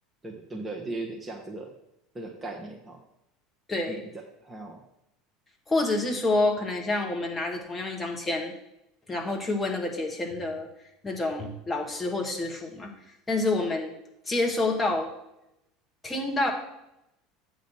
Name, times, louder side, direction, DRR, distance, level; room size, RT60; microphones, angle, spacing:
voice 1, 0.2-1.7 2.1-3.0 3.9-4.0 4.4-4.8, right 2 dB, 20° right, 1 dB, 1.3 m, -37 dB
voice 2, 3.7-4.0 5.7-8.5 9.1-10.7 11.0-12.9 13.3-13.9 14.2-15.1 16.0-16.5, left 2 dB, 15° left, 1 dB, 1.8 m, -28 dB
8.3 x 4.0 x 6.4 m, 0.84 s
figure-of-eight pair, 70°, 0 cm